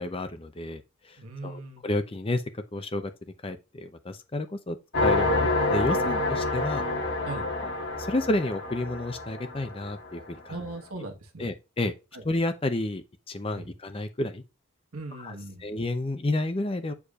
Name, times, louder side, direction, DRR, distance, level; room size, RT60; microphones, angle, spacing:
voice 1, 0.0-3.1 3.4-4.8 5.0-6.8 7.6-7.7 8.0-10.6 11.4-11.9 12.2-14.4 15.2-16.9, left 2 dB, 25° left, 0.6 m, -31 dB
voice 2, 1.2-1.8 7.2-7.5 10.5-11.5 12.1-12.2 13.5-13.7 14.9-15.7, right 2 dB, 75° right, 1.4 m, -39 dB
sound 1, 4.9-10.3, left 2 dB, 50° left, 1.7 m, -27 dB
8.3 x 4.7 x 2.4 m
head